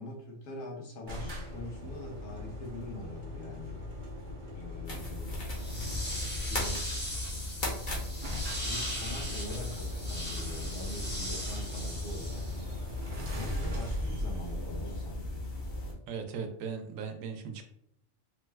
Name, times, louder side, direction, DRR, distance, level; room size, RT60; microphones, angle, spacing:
voice 1, 0.0-3.8 4.5-5.4 6.4-6.8 7.3-7.6 8.6-12.4 13.3-15.5, left 1 dB, 80° left, 0 dB, 1.2 m, -43 dB
sound 1, 1.1-6.6 7.6-7.7 7.9-8.0 8.2-15.7, left 1 dB, 50° right, 0.7 m, -40 dB
sound 2, 4.8-15.9, left 2 dB, 50° left, 1.1 m, -38 dB
sound 3, 5.5-12.7, equal, 10° left, 0.8 m, -39 dB
voice 2, 16.1-17.6, right 6 dB, 85° right, 5 dB, 1.0 m, -38 dB
3.1 x 2.1 x 3.3 m, 0.76 s
omnidirectional pair, 1.4 m